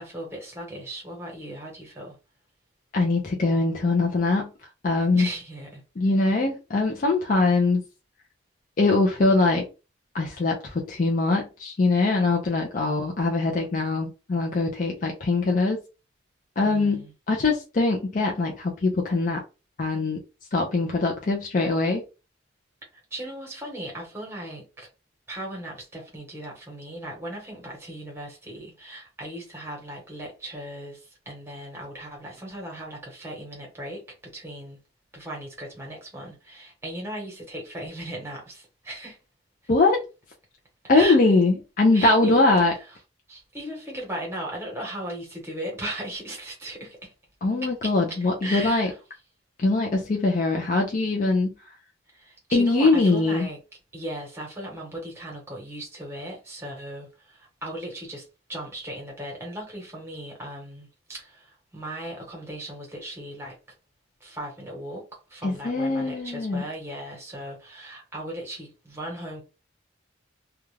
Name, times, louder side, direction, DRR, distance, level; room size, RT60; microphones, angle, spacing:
voice 1, 0.0-2.2 5.1-5.8 6.1-6.2 12.7-13.1 16.6-17.1 22.9-24.9 25.3-34.8 35.1-39.2 40.9-41.2 41.9-43.0 43.3-47.1 47.6-49.0 52.1-53.6 53.9-63.6 64.2-65.0 65.3-69.4, right 1 dB, 10° right, 1.0 m, -37 dB
voice 2, 2.9-4.5 4.8-5.3 6.0-7.8 8.8-9.6 10.1-10.6 10.9-15.8 16.6-19.4 19.8-20.2 20.5-22.0 39.7-40.0 40.9-42.7 47.4-48.9 49.6-51.5 52.5-53.5 65.4-66.6, left 3 dB, 40° left, 0.4 m, -22 dB
2.4 x 2.2 x 3.1 m
head